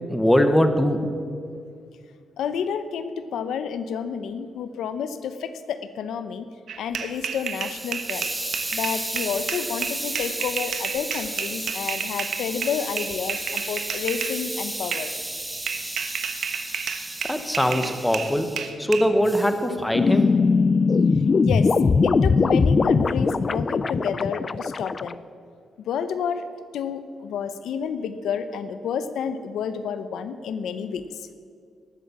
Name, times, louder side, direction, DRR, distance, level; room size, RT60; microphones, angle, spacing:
voice 1, 0.1-1.1 17.3-18.5 18.8-20.3, equal, 5° left, 7 dB, 1.2 m, -21 dB
voice 2, 2.4-6.5 6.8-8.3 8.7-15.1 21.4-21.7 22.0-25.2 25.8-26.4 26.7-31.3, left 7 dB, 85° left, 11 dB, 0.8 m, -30 dB
sound 1, 6.7-14.4 14.9-15.1 15.7-19.0, right 7 dB, 70° right, 1.2 m, -31 dB
Hiss, 6.9-18.7 19.2-19.6, right 2 dB, 15° right, 1.3 m, -34 dB
sound 2, 17.7-17.9 18.4-18.6 19.1-19.2 19.6-19.7 19.9-25.1, left 4 dB, 35° left, 0.4 m, -20 dB
18.5 x 8.4 x 7.3 m, 2.3 s
cardioid pair, 110°, 0 cm